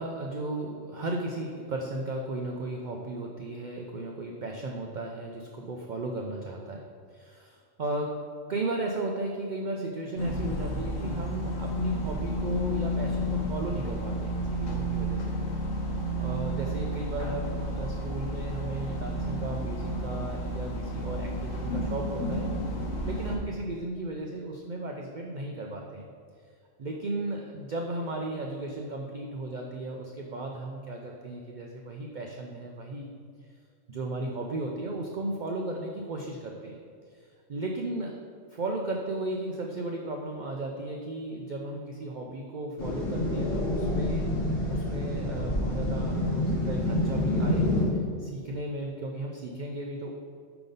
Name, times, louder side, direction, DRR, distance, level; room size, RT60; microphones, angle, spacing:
voice 1, 0.0-6.8 7.1-8.2 8.5-15.3 16.2-22.5 23.0-26.1 26.8-33.1 33.9-36.7 37.5-38.1 38.5-44.2 44.7-47.7 48.2-50.1, right 2 dB, 65° right, 0 dB, 0.4 m, -35 dB
sound 1, 10.2-23.4, equal, 70° left, 1.2 m, -31 dB
sound 2, 42.8-47.9, left 1 dB, 50° left, 1.2 m, -27 dB
5.8 x 3.9 x 5.2 m, 2.1 s
omnidirectional pair, 1.4 m